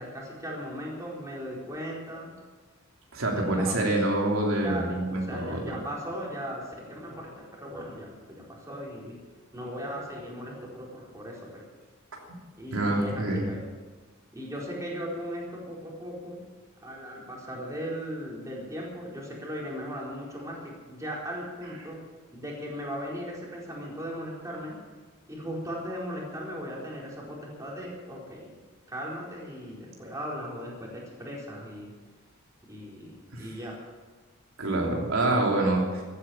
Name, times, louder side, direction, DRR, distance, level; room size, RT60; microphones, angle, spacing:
voice 1, 0.0-2.3 3.3-3.8 4.6-9.2 9.5-11.6 12.6-13.6 14.3-16.4 16.8-22.0 22.3-24.8 25.3-28.6 28.9-31.9 32.6-33.1 33.4-33.8, equal, 15° right, -4 dB, 4.4 m, -38 dB
voice 2, 3.1-5.8 12.3-12.4 12.7-13.4 33.3-33.5 34.6-36.0, right 2 dB, 80° right, -1 dB, 3.1 m, -26 dB
15.5 x 10.0 x 8.8 m, 1.4 s
head